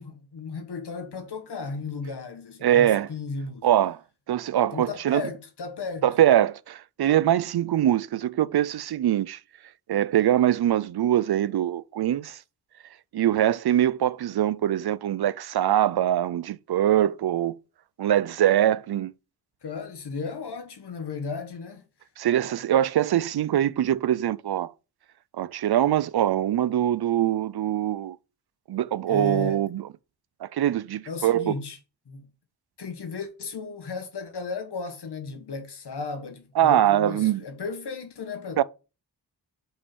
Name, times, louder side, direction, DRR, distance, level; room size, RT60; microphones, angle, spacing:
voice 1, 0.0-3.7 4.7-6.1 19.6-21.8 29.1-29.6 31.1-31.8 32.1-32.3 32.8-38.6, left 4 dB, 80° left, 1.7 m, -35 dB
voice 2, 2.6-3.1 3.6-4.0 4.3-5.2 6.0-9.4 9.9-12.4 13.1-17.6 18.0-19.1 22.2-24.7 25.3-28.2 28.7-29.9 30.4-31.5 36.6-37.4 38.6-38.7, right 11 dB, 70° right, 0.5 m, -23 dB
5.6 x 5.5 x 6.2 m
wide cardioid pair, 145°, 40 cm